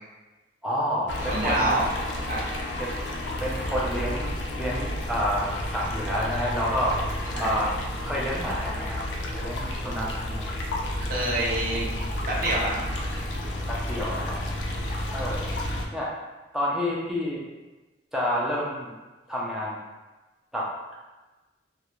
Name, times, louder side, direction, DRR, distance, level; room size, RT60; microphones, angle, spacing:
voice 1, 0.6-1.8 2.8-3.0 3.4-7.7 8.0-9.0 9.3-10.6 13.7-14.4 15.1-15.5 15.9-16.1 16.5-17.4 18.1-18.9 19.3-19.8 20.5-20.9, equal, 5° right, -6 dB, 0.4 m, -29 dB
sound 1, 1.1-15.9, left 1 dB, 80° left, 0.4 m, -31 dB
voice 2, 1.3-1.9 2.3-2.4 7.3-7.6 11.0-11.9 12.3-12.8, right 1 dB, 50° right, -5 dB, 0.6 m, -26 dB
2.4 x 2.1 x 3.0 m, 1.2 s
head